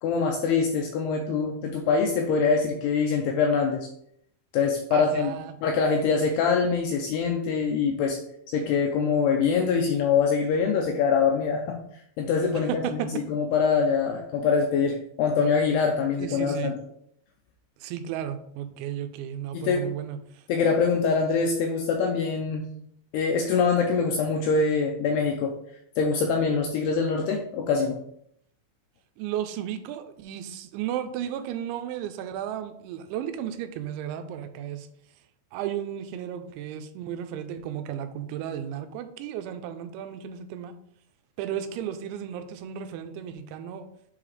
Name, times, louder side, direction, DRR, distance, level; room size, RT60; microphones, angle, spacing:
voice 1, 0.0-3.9 4.5-5.3 5.6-8.2 8.5-11.8 12.2-16.8 19.5-19.9 20.5-22.7 23.1-25.6 26.0-28.0, left 5 dB, 85° left, 2 dB, 2.3 m, -24 dB
voice 2, 4.9-5.5 12.7-13.1 16.2-16.7 17.8-20.2 29.2-34.9 35.5-40.7 41.4-43.9, right 10 dB, 90° right, 9 dB, 3.0 m, -34 dB
7.7 x 3.9 x 3.2 m, 0.71 s
omnidirectional pair, 5.2 m